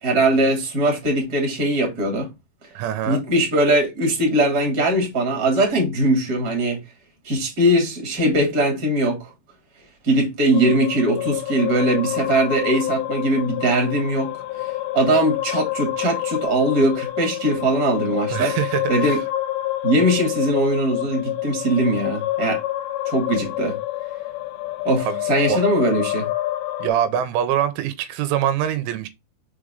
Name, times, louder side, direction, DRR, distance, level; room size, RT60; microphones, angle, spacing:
voice 1, 0.0-2.3 3.0-6.8 7.2-9.3 10.0-14.3 14.9-18.5 18.9-19.2 19.8-22.6 23.1-23.8 24.8-26.3, right 1 dB, 25° right, 2.5 m, -20 dB
voice 2, 2.8-3.2 18.3-19.2 25.1-25.2 25.5-25.6 26.8-29.1, right 10 dB, 85° right, 3.3 m, -24 dB
sound 1, 10.5-26.9, left 15 dB, 80° left, 2.6 m, -28 dB
6.7 x 5.0 x 3.8 m
omnidirectional pair, 5.6 m